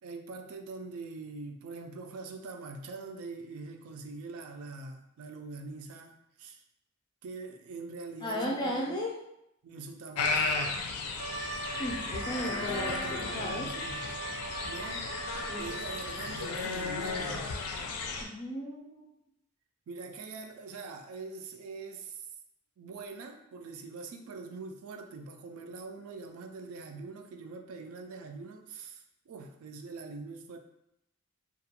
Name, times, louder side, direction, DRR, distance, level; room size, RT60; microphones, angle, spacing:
voice 1, 0.0-6.6 7.2-9.0 9.6-10.8 12.4-14.0 14.7-15.1 15.6-17.5 19.9-22.3 22.8-30.6, right 3 dB, 70° right, 4 dB, 0.3 m, -43 dB
voice 2, 8.2-9.1 11.8-13.7 15.5-15.6 18.2-19.0, equal, 20° left, -2 dB, 0.4 m, -35 dB
sound 1, 10.2-18.2, left 4 dB, 90° left, 0.4 m, -34 dB
Trumpet, 11.2-16.5, right 3 dB, 90° right, 0.7 m, -40 dB
2.4 x 2.2 x 2.8 m, 0.82 s
head